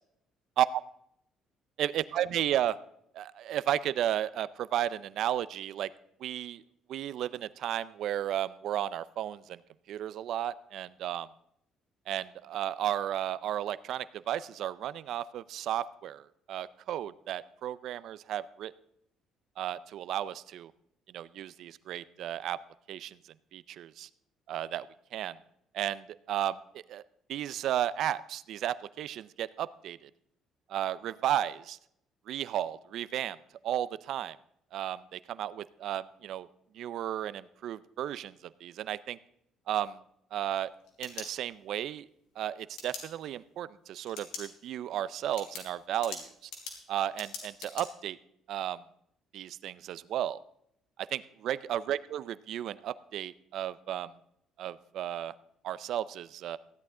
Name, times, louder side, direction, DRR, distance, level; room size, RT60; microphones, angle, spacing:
voice 1, 1.8-2.8 3.1-5.9 6.2-6.6 6.9-9.6 9.9-11.3 12.1-18.7 19.6-20.7 21.1-22.6 22.9-23.2 23.5-24.1 24.5-25.4 25.7-26.6 26.9-27.0 27.3-30.1 30.7-31.8 32.3-33.4 33.6-34.4 34.7-36.5 36.7-38.3 38.6-39.2 39.7-40.0 40.3-40.7 41.0-42.1 42.4-46.5 46.9-48.2 48.5-48.8 49.3-50.4 51.0-54.1 54.6-55.3 55.6-56.6, right 11 dB, 65° right, 17 dB, 0.4 m, -33 dB
sound 1, 40.7-41.8 42.8-43.0 44.1-44.5 44.9-45.0 45.4-47.9, left 5 dB, 85° left, 3.5 m, -43 dB
15.5 x 10.5 x 3.7 m, 0.74 s
cardioid pair, 130°, 0 cm